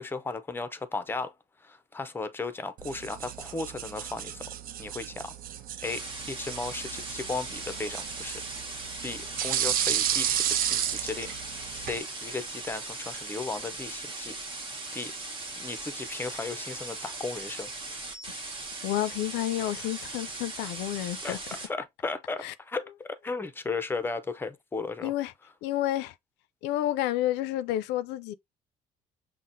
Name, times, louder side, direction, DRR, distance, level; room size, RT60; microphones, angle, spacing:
voice 1, 0.0-1.3 1.6-4.5 4.8-5.3 5.8-8.4 8.7-8.8 9.0-11.3 11.7-14.4 14.9-15.1 15.6-17.7 21.2-21.4 21.7-25.1, left 3 dB, 15° left, 0.5 m, -35 dB
sound 1, 2.8-12.0, right 10 dB, 60° right, 0.5 m, -33 dB
sound 2, 5.8-21.7, right 3 dB, 30° right, 1.1 m, -39 dB
voice 2, 18.8-21.4 22.4-22.5 25.0-25.3 25.6-26.1 26.6-28.3, left 13 dB, 90° left, 0.4 m, -30 dB
5.6 x 2.1 x 2.5 m
cardioid pair, 110°, 17 cm